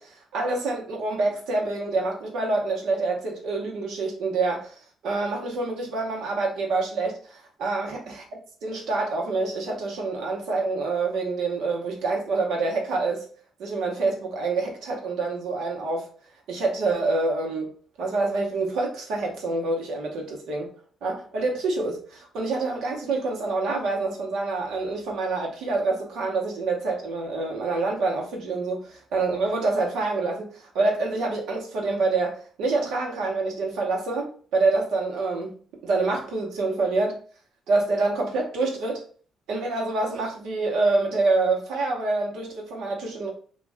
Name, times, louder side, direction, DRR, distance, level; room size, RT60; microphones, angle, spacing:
voice 1, 0.0-4.8 5.0-13.2 13.6-16.1 16.5-20.7 21.0-35.5 35.8-37.2 37.7-39.0 39.5-43.3, right 3 dB, 85° right, 1.0 m, -26 dB
3.1 x 2.4 x 3.4 m
cardioid pair, 90°, 0 cm